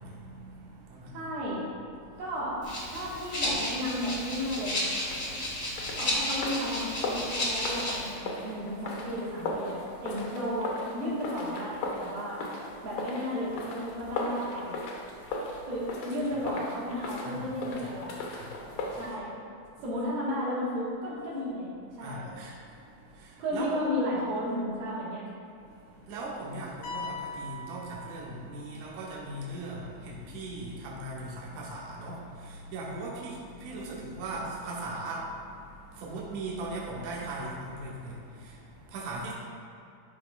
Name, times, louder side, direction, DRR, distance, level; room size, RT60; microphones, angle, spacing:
voice 1, 0.0-1.4 2.0-2.3 5.2-6.2 12.8-12.9 15.0-15.7 16.3-16.4 17.2-17.9 18.3-19.2 19.6-19.8 21.9-23.7 25.6-39.3, right 2 dB, 65° right, -5 dB, 2.0 m, -40 dB
voice 2, 1.1-1.7 2.2-2.6 2.9-4.9 6.0-12.4 12.8-14.7 15.7-18.2 18.9-19.4 19.8-22.3 23.4-25.2, equal, 80° right, -7 dB, 3.4 m, -33 dB
Rattle (instrument), 2.6-8.1, left 1 dB, 45° left, 0.8 m, -32 dB
sound 1, 5.0-19.1, left 2 dB, 85° left, 1.4 m, -38 dB
sound 2, 26.8-28.7, left 2 dB, 65° left, 1.4 m, -40 dB
11.0 x 5.5 x 2.4 m, 2.5 s
omnidirectional pair, 4.0 m